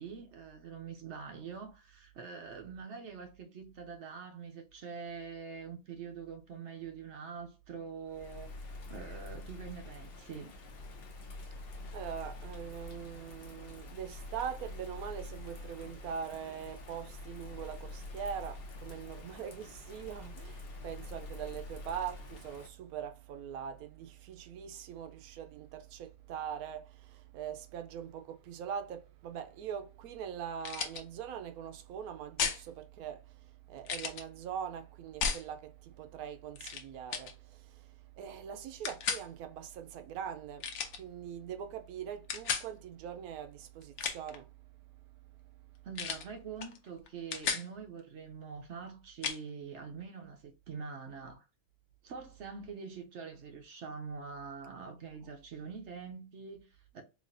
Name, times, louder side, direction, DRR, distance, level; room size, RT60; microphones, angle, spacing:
voice 1, 0.0-10.5 45.8-51.5 52.0-57.0, right 5 dB, 65° right, 0.8 m, -45 dB
Bird vocalization bird call bird song / Rain, 8.0-22.7, left 2 dB, 50° left, 0.9 m, -46 dB
voice 2, 11.9-44.5 54.7-54.8, right 8 dB, 90° right, 1.1 m, -42 dB
sound 1, 30.6-31.0 32.4-32.6 33.8-34.2 35.2-35.4 36.6-36.8 37.1-37.3 38.8-39.2 40.6-41.0 42.3-42.7 43.8-44.4 46.0-46.3 46.6-46.8 47.1-47.7 49.2-49.4, left 6 dB, 75° left, 1.1 m, -34 dB
4.1 x 2.8 x 2.5 m
omnidirectional pair, 1.5 m